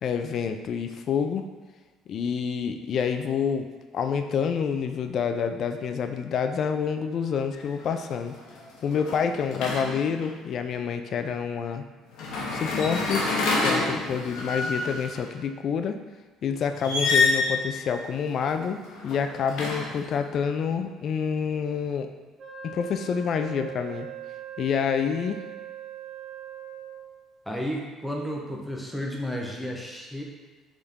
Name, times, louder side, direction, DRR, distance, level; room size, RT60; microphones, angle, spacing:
voice 1, 0.0-1.5 2.1-8.3 8.8-11.8 12.5-13.2 13.6-16.0 16.4-22.1 22.6-24.1 24.6-25.4, left 6 dB, 50° left, 7 dB, 0.4 m, -28 dB
sound 1, 7.5-7.8 8.2-10.3 12.1-15.2 16.7-17.6 18.8-20.1, left 3 dB, 75° left, 0.9 m, -27 dB
Wind instrument woodwind instrument, 22.4-27.1, right 9 dB, 50° right, 1.4 m, -40 dB
voice 2, 27.5-30.2, equal, ahead, -1 dB, 0.7 m, -32 dB
4.0 x 3.7 x 3.6 m, 1.3 s
cardioid pair, 130°, 0 cm